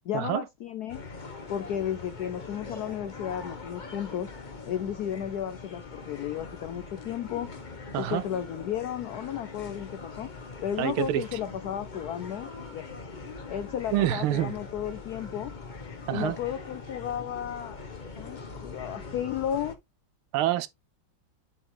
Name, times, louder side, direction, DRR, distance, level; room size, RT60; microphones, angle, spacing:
voice 1, 0.0-1.0 1.5-4.3 4.7-7.5 7.9-10.3 10.6-13.0 13.5-15.5 16.1-17.8 18.2-19.8, left 10 dB, 70° left, 0.9 m, -33 dB
sound 1, 0.9-19.7, left 4 dB, 30° left, 0.9 m, -42 dB
voice 2, 10.8-11.2 13.9-14.5 16.1-16.4 20.3-20.7, right 13 dB, 85° right, 1.5 m, -26 dB
7.2 x 5.0 x 3.4 m
omnidirectional pair, 2.3 m